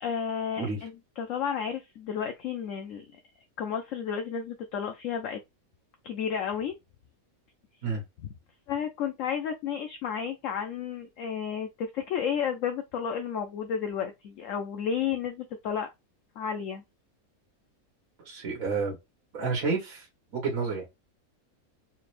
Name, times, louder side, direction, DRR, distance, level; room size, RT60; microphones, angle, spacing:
voice 1, 0.0-3.2 3.6-5.4 6.0-6.8 8.7-15.9 16.4-16.8, left 7 dB, 70° left, 0.9 m, -32 dB
voice 2, 18.2-19.0 19.3-20.1 20.3-20.9, right 4 dB, 70° right, 1.6 m, -30 dB
4.1 x 3.2 x 2.5 m
omnidirectional pair, 1.5 m